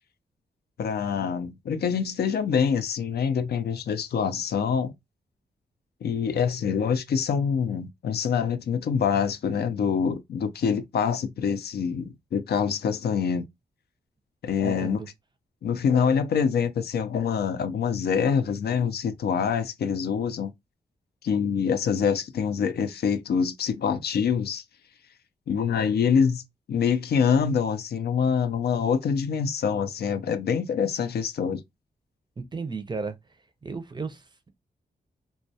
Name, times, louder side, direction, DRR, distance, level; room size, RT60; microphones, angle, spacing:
voice 1, 0.8-4.9 6.0-13.5 14.4-15.0 15.6-20.5 21.2-24.6 25.5-26.4 26.7-31.6, left 6 dB, 70° left, 0.4 m, -25 dB
voice 2, 14.6-15.1 32.4-33.2 33.6-34.5, right 4 dB, 25° right, 0.5 m, -34 dB
2.2 x 2.1 x 2.7 m
cardioid pair, 75°, 17 cm